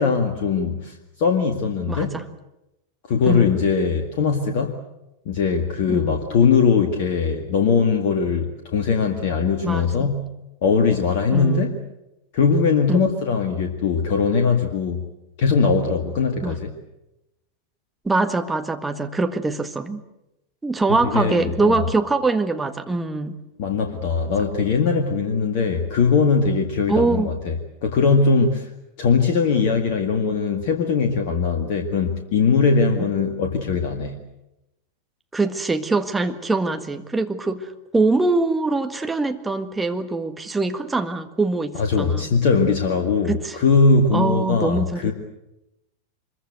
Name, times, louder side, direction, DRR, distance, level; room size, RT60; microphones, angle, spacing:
voice 1, 0.0-2.2 3.1-4.8 5.3-10.3 10.6-11.7 12.3-15.1 15.4-16.7 21.1-21.8 23.6-27.6 27.8-28.7 29.0-34.2 41.8-45.1, left 5 dB, 50° left, 5 dB, 2.0 m, -20 dB
voice 2, 1.9-2.2 3.2-3.6 5.9-6.2 9.6-10.1 11.3-11.7 12.9-13.1 16.4-16.6 18.0-20.0 20.6-23.4 26.9-27.3 33.0-33.1 35.3-42.3 43.3-43.6 44.1-45.1, right 3 dB, 10° right, 7 dB, 1.7 m, -23 dB
25.0 x 22.5 x 8.0 m, 0.91 s
figure-of-eight pair, 90°, 0 cm